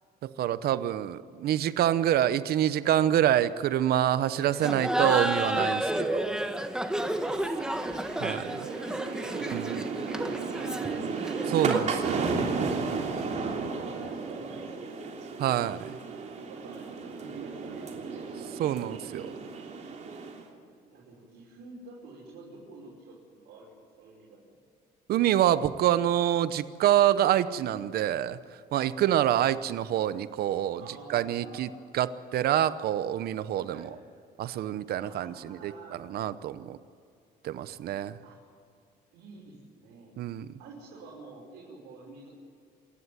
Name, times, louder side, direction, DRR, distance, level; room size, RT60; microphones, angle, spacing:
voice 1, 0.2-6.3 8.2-8.6 9.5-9.8 11.5-12.3 15.4-16.0 18.6-19.3 25.1-28.4 28.7-30.8 31.1-31.7 31.9-33.8 34.4-35.7 36.1-36.8 37.4-38.2 40.2-40.5, right 11 dB, 65° right, 15 dB, 0.9 m, -26 dB
Laughter, 4.6-12.0, right 1 dB, 5° right, 1.4 m, -31 dB
sound 1, 7.0-20.5, right 4 dB, 45° right, 3.3 m, -34 dB
voice 2, 8.5-11.3 13.1-15.4 16.5-18.3 20.9-24.4 28.9-29.2 30.8-31.7 33.6-33.9 35.0-36.0 38.2-38.4 39.1-40.1 40.6-42.3, right 3 dB, 80° right, -5 dB, 5.8 m, -48 dB
27.0 x 11.0 x 9.5 m, 2.4 s
cardioid pair, 110°, 17 cm